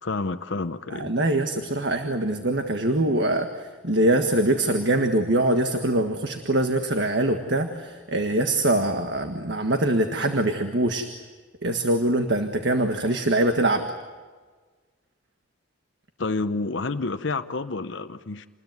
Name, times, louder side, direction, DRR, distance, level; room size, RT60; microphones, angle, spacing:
voice 1, 0.0-1.1 16.2-18.5, left 3 dB, 60° left, 8 dB, 0.8 m, -29 dB
voice 2, 1.0-3.5 3.8-11.0 11.6-13.8, right 1 dB, 60° right, 5 dB, 1.6 m, -23 dB
28.5 x 21.0 x 9.4 m, 1.4 s
head